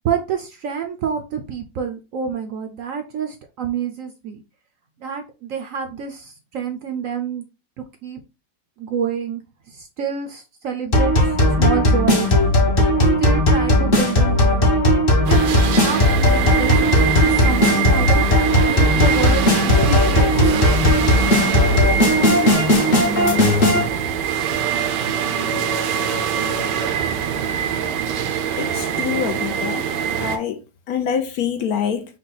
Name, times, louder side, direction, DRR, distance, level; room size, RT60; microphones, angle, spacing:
voice 1, 0.0-4.4 5.0-7.4 8.0-8.2 8.8-9.4 9.7-11.1 11.6-12.3 13.2-14.7 15.3-15.5 15.7-18.3 18.5-20.7, right 7 dB, 65° right, 0.8 m, -27 dB
sound 1, 10.9-23.8, left 1 dB, 40° left, 1.0 m, -16 dB
sound 2, 15.3-30.4, right 8 dB, 85° right, 1.3 m, -24 dB
voice 2, 28.6-29.8 30.2-30.6 30.9-32.1, left 8 dB, 70° left, 1.0 m, -25 dB
5.3 x 2.3 x 3.9 m
omnidirectional pair, 1.8 m